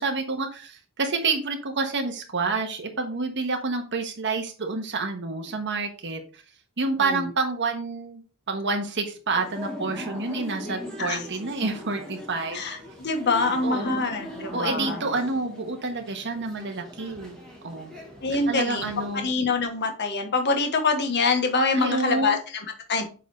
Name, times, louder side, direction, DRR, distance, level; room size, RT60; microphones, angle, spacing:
voice 1, 0.0-6.4 6.8-8.2 8.5-12.6 13.6-14.0 14.5-17.4 17.6-17.9 18.5-19.3 21.7-22.4, right 3 dB, 55° right, 3 dB, 1.4 m, -28 dB
sound 1, 9.3-19.3, left 1 dB, 5° left, 1.8 m, -39 dB
voice 2, 12.5-15.0 18.2-23.0, left 4 dB, 50° left, 5 dB, 1.2 m, -25 dB
7.5 x 3.9 x 4.2 m, 0.37 s
head